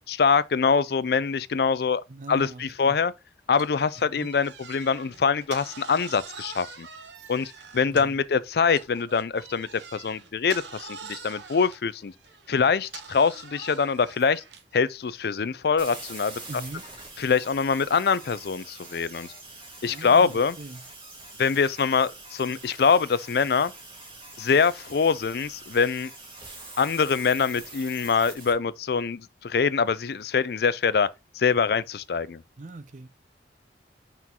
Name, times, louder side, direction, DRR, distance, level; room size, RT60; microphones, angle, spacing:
voice 1, 0.1-3.1 3.5-6.9 7.3-12.1 12.5-14.4 14.7-16.4 17.2-19.3 19.8-20.6 21.4-23.7 24.4-26.1 26.8-31.1 31.4-32.4, left 5 dB, 60° left, 0.4 m, -24 dB
voice 2, 2.1-3.0 4.1-4.3 7.9-8.2 16.5-16.8 19.9-20.8 32.6-33.1, right 2 dB, 45° right, 0.6 m, -40 dB
sound 1, 3.5-8.3 8.7-14.8, right 5 dB, 75° right, 0.9 m, -44 dB
sound 2, 15.8-28.5, right 2 dB, 30° right, 1.9 m, -44 dB
5.9 x 4.5 x 3.7 m
head